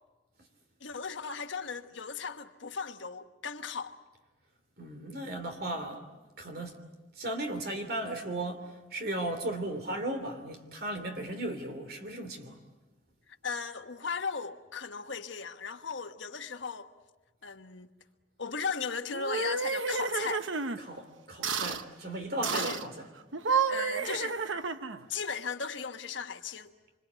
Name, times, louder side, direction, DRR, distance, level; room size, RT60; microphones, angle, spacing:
voice 1, 0.8-3.9 13.3-16.9 17.4-17.9 18.4-20.5 22.5-22.8 23.7-24.4 25.1-26.7, left 5 dB, 75° left, 1.4 m, -37 dB
voice 2, 4.8-6.0 6.4-6.8 7.2-12.6 20.8-22.9, right 1 dB, 50° right, 3.1 m, -36 dB
sound 1, 19.1-20.8 21.4-21.8 22.4-22.9 23.3-25.1, right 5 dB, 85° right, 1.1 m, -31 dB
26.5 x 26.0 x 8.2 m
head